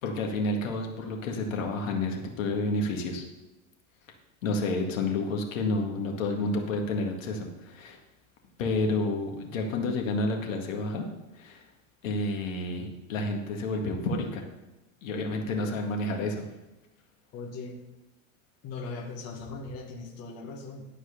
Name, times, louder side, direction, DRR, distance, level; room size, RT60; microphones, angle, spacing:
voice 1, 0.0-3.2 4.4-8.0 8.6-11.0 11.3-11.6 12.0-14.4 15.0-16.4, left 2 dB, 80° left, 2 dB, 2.1 m, -30 dB
voice 2, 17.3-17.8 18.6-20.9, left 3 dB, 40° left, 1 dB, 1.6 m, -39 dB
12.0 x 4.8 x 6.6 m, 1.0 s
supercardioid pair, 135°, 39 cm